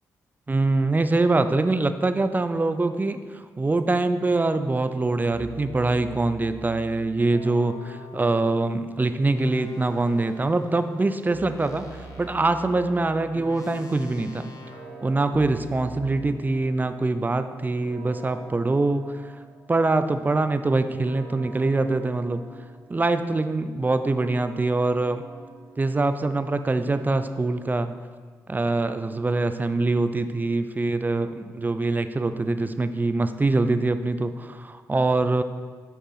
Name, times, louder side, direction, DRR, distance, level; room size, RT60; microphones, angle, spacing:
voice 1, 0.5-11.9 12.2-14.5 15.0-19.3 19.7-22.4 22.9-25.2 25.8-27.9 28.5-35.4, right 2 dB, 25° right, 10 dB, 0.4 m, -24 dB
sound 1, 4.2-4.5 5.3-8.7 9.3-16.2, equal, 45° left, 1.0 m, -42 dB
sound 2, 12.0-25.8, right 3 dB, 60° right, 1.2 m, -49 dB
8.1 x 3.6 x 4.1 m, 1.5 s
supercardioid pair, 55°, 8 cm